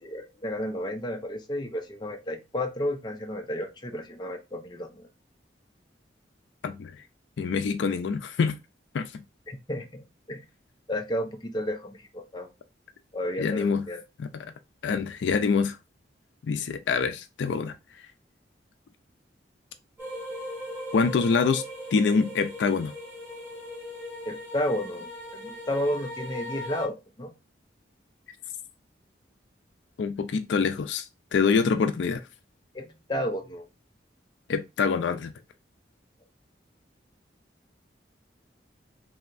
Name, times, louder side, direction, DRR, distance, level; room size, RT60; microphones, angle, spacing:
voice 1, 0.0-5.1 9.5-10.4 10.9-12.5 13.1-14.0 24.2-27.3 32.7-33.7, left 1 dB, 25° left, 0.5 m, -32 dB
voice 2, 6.6-7.0 7.4-8.6 8.9-9.2 13.4-13.9 14.2-14.5 14.8-15.8 16.4-17.8 20.9-21.7 21.9-22.9 30.0-31.1 31.3-32.2 34.5-35.3, left 5 dB, 80° left, 0.4 m, -25 dB
sound 1, 20.0-26.9, equal, 10° right, 1.2 m, -39 dB
3.2 x 2.7 x 2.5 m
head